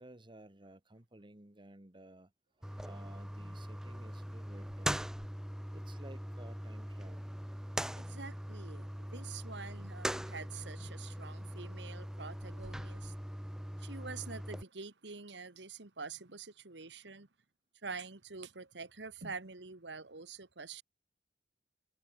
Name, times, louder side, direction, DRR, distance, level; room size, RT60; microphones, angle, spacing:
voice 1, 0.0-2.3 2.6-5.0 5.7-7.3, right 1 dB, 30° right, 1.6 m, -55 dB
sound 1, 2.6-14.6, equal, 5° right, 1.3 m, -41 dB
voice 2, 8.0-13.1 13.8-17.3 17.8-20.8, right 4 dB, 80° right, 1.8 m, -46 dB
head